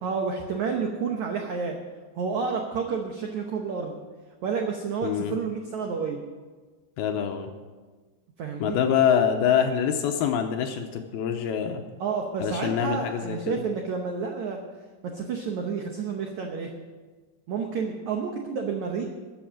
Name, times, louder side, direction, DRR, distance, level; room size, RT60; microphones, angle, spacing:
voice 1, 0.0-1.8 2.1-3.9 4.4-6.2 8.4-8.8 12.0-14.6 15.0-16.7 17.5-19.0, right 5 dB, 90° right, 2 dB, 1.6 m, -30 dB
voice 2, 5.0-5.4 7.0-7.5 8.6-11.8 12.4-13.6, left 8 dB, 80° left, 5 dB, 2.5 m, -25 dB
13.5 x 7.8 x 7.5 m, 1.4 s
omnidirectional pair, 4.8 m